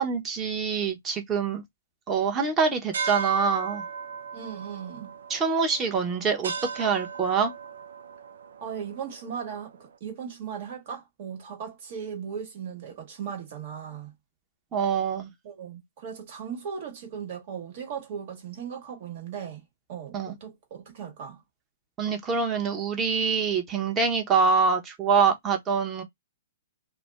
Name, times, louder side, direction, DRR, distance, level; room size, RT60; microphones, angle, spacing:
voice 1, 0.0-1.6 2.1-3.8 5.3-7.5 14.7-15.3 20.1-20.3 22.0-26.0, right 5 dB, 20° right, 1.0 m, -25 dB
sound 1, 2.9-9.8, right 5 dB, 70° right, 0.4 m, -37 dB
voice 2, 4.3-5.1 8.6-14.1 15.4-19.6 19.9-21.4, right 7 dB, 50° right, 1.4 m, -37 dB
2.5 x 2.1 x 3.4 m
hypercardioid pair, 120°, 0 cm